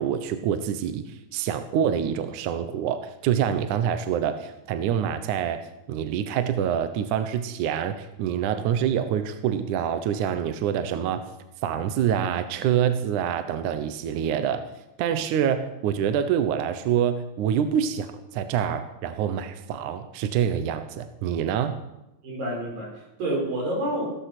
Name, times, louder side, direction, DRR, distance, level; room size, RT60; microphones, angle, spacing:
voice 1, 0.0-5.6 5.9-11.3 11.6-14.6 15.0-21.8, right 9 dB, 70° right, 9 dB, 2.2 m, -26 dB
voice 2, 22.2-24.1, right 1 dB, 85° right, -1 dB, 7.0 m, -28 dB
16.5 x 13.5 x 6.0 m, 0.91 s
omnidirectional pair, 4.0 m